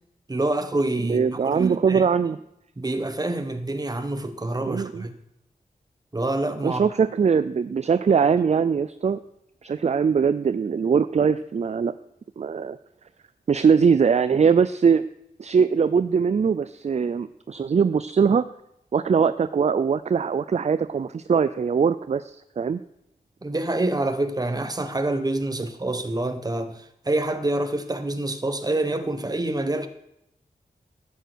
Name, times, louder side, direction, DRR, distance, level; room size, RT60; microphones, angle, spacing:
voice 1, 0.3-2.1 2.8-5.2 6.1-6.9 7.2-7.4 23.4-29.9, right 2 dB, 25° right, 1.3 m, -27 dB
voice 2, 1.1-2.4 4.7-5.0 6.6-9.2 9.6-11.9 12.4-12.8 13.5-15.1 15.4-18.4 18.9-22.8, right 6 dB, 45° right, 0.4 m, -21 dB
13.0 x 9.2 x 6.3 m
wide cardioid pair, 105°, 16 cm